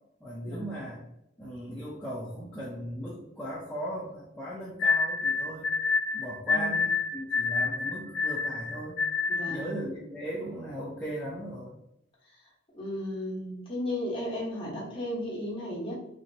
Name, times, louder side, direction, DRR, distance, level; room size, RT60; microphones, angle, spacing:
voice 1, 0.2-1.0 1.4-5.7 6.1-9.0 9.5-11.8, equal, 5° left, -7 dB, 0.4 m, -38 dB
sound 1, 4.8-9.7, left 4 dB, 55° left, 0.8 m, -28 dB
voice 2, 9.3-9.7 12.7-15.9, left 1 dB, 25° left, -5 dB, 1.0 m, -34 dB
2.9 x 2.8 x 2.7 m, 0.82 s
head